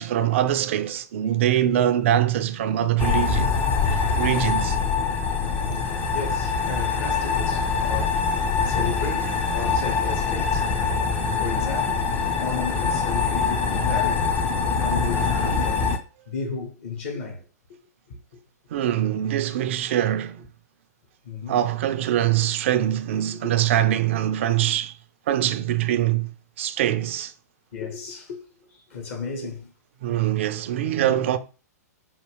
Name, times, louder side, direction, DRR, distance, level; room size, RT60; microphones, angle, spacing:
voice 1, 0.0-3.6 3.9-4.8 14.8-14.9 15.3-15.5 18.7-20.4 21.5-24.9 25.3-26.3 26.6-27.3 30.0-31.4, right 11 dB, 45° right, 0.4 m, -23 dB
sound 1, 3.0-16.0, left 5 dB, 20° left, 0.5 m, -24 dB
voice 2, 5.4-10.7 11.4-12.1 12.4-14.4 14.8-15.9 16.3-17.5 18.1-18.2 21.2-21.6 23.3-23.5 27.7-29.7 31.0-31.3, left 5 dB, 50° left, 1.0 m, -34 dB
5.5 x 2.3 x 3.3 m
figure-of-eight pair, 110°, 9 cm